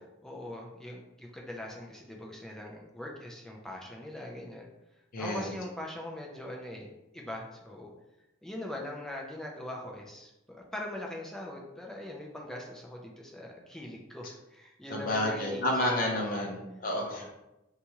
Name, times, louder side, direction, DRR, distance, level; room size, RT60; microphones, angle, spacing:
voice 1, 0.2-4.7 5.2-7.9 8.4-16.5 17.0-17.3, left 1 dB, 5° left, -1 dB, 0.4 m, -42 dB
voice 2, 5.1-5.5 14.9-17.3, left 1 dB, 45° left, -2 dB, 0.6 m, -30 dB
2.9 x 2.3 x 2.8 m, 0.94 s
head